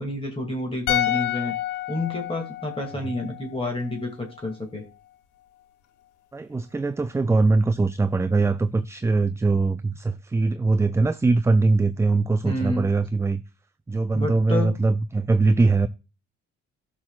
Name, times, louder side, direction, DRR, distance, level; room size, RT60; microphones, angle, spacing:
voice 1, 0.0-1.5 1.9-4.8 12.4-12.9 14.1-14.7, left 2 dB, 20° left, 2.3 m, -29 dB
sound 1, 0.9-4.1 4.3-4.5, left 12 dB, 85° left, 1.0 m, -29 dB
voice 2, 6.3-13.4 13.9-15.9, right 3 dB, 10° right, 0.3 m, -22 dB
14.0 x 6.1 x 2.4 m
cardioid pair, 90°, 30 cm